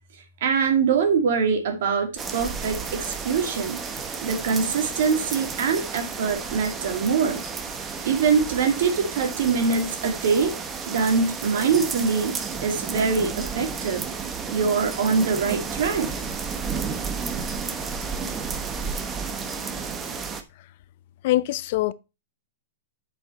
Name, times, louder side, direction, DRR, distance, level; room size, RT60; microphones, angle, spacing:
voice 1, 0.4-3.8 4.2-7.4 8.0-10.5 10.9-12.3 12.6-14.0 14.5-16.1, right 5 dB, 65° right, 2.1 m, -23 dB
sound 1, 2.2-20.4, right 5 dB, 15° right, 1.0 m, -32 dB
voice 2, 21.2-21.9, left 16 dB, 50° left, 0.6 m, -23 dB
7.8 x 5.1 x 4.0 m
hypercardioid pair, 145°, 0 cm